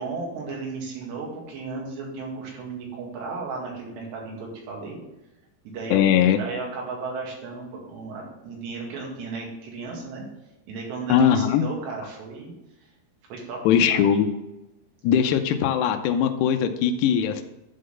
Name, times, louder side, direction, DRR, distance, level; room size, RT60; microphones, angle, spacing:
voice 1, 0.0-5.0 5.7-10.2 10.7-12.5 13.3-14.1, right 4 dB, 85° right, -1 dB, 4.2 m, -34 dB
voice 2, 5.9-6.4 11.1-11.6 13.7-14.3 15.0-17.4, left 9 dB, 85° left, 7 dB, 2.8 m, -20 dB
11.0 x 3.9 x 6.4 m, 0.96 s
omnidirectional pair, 4.8 m